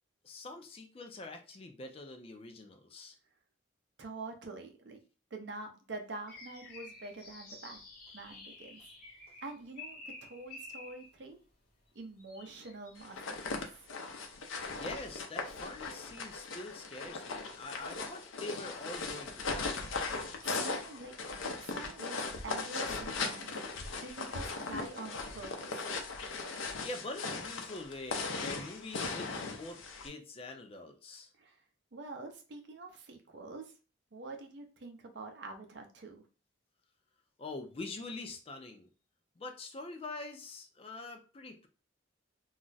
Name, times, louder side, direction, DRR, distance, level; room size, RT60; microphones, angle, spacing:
voice 1, 0.2-3.2 14.7-19.8 26.8-31.3 37.4-38.9 39.4-41.7, left 2 dB, 30° left, 5 dB, 0.4 m, -45 dB
voice 2, 4.0-5.0 5.3-7.8 8.1-8.8 9.4-11.4 11.9-13.8 20.2-21.1 21.4-23.5 24.0-25.8 31.4-31.6 31.9-33.7 34.1-36.2, right 3 dB, 60° right, 3 dB, 0.6 m, -46 dB
sound 1, 6.3-11.1 11.9-13.0, left 3 dB, 45° left, 0.8 m, -50 dB
sound 2, 13.0-30.1, left 4 dB, 85° left, 0.5 m, -38 dB
2.3 x 2.0 x 3.9 m, 0.34 s
head